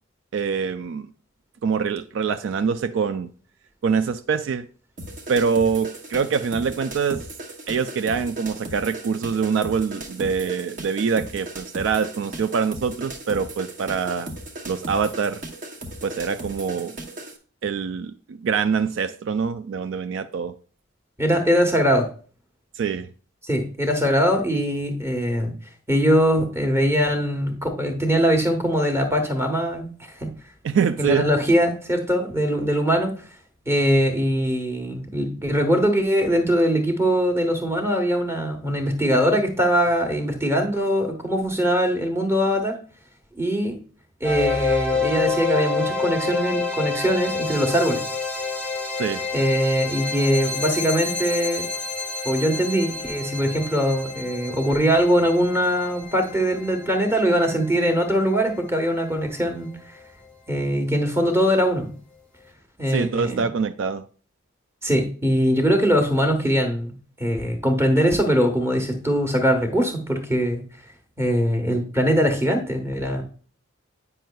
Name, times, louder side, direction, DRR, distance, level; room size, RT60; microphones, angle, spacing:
voice 1, 0.3-1.1 1.6-3.3 3.8-4.7 5.3-7.3 7.7-14.3 14.6-15.4 16.0-17.0 17.6-20.5 22.8-23.1 30.6-31.3 49.0-49.3 62.9-64.1, right 6 dB, 70° right, 0.3 m, -24 dB
sound 1, 5.0-17.4, right 1 dB, 40° right, 0.8 m, -37 dB
voice 2, 21.2-22.1 23.4-25.5 25.9-29.9 30.2-30.3 31.0-33.1 33.7-42.8 43.4-43.8 44.2-48.0 49.3-51.7 52.2-59.7 60.5-61.9 62.8-63.4 64.8-66.9 67.2-70.6 71.2-73.2, equal, 15° right, 1.1 m, -21 dB
sound 2, 44.2-59.2, left 4 dB, 5° left, 0.8 m, -29 dB
9.1 x 5.5 x 2.2 m
head